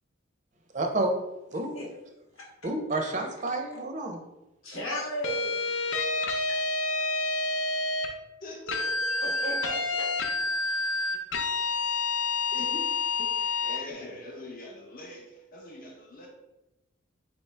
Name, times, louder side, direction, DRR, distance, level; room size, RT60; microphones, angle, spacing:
voice 1, 0.7-1.1 1.5-1.7 2.6-4.2, right 2 dB, 35° right, 4 dB, 0.5 m, -29 dB
voice 2, 4.6-6.6 9.2-10.1, equal, 90° left, -4 dB, 1.5 m, -37 dB
sound 1, 5.2-8.1 8.7-13.8, left 3 dB, 65° left, 0.5 m, -28 dB
voice 3, 8.4-10.2 12.5-16.3, left 1 dB, 45° left, -1 dB, 0.8 m, -43 dB
4.5 x 3.0 x 3.2 m, 0.97 s
head